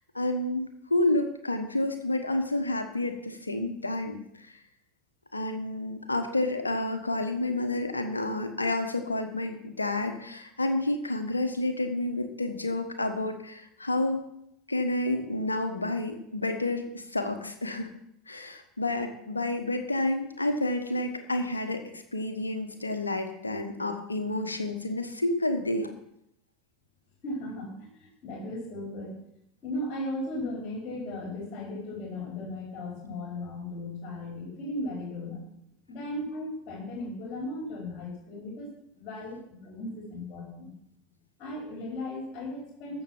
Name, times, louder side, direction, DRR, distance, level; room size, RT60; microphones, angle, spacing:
voice 1, 0.1-4.6 5.3-14.3 14.7-17.9 18.3-25.9, left 2 dB, 85° left, 7 dB, 1.2 m, -30 dB
voice 2, 27.2-29.2 29.6-35.4 35.9-38.7 39.0-40.7 41.4-43.0, left 1 dB, 40° left, -2 dB, 4.3 m, -36 dB
14.5 x 6.6 x 5.9 m, 0.77 s
figure-of-eight pair, 80°, 0 cm